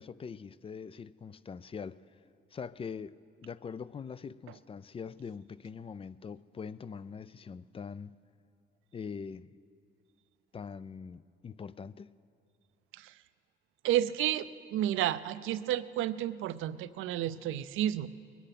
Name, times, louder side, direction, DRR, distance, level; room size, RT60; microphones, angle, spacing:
voice 1, 0.0-2.0 2.5-8.1 8.9-9.5 10.5-12.1, left 6 dB, 30° left, 0.4 m, -43 dB
voice 2, 13.8-18.1, right 12 dB, 85° right, 0.5 m, -31 dB
22.0 x 10.0 x 5.9 m
cardioid pair, 90°, 20 cm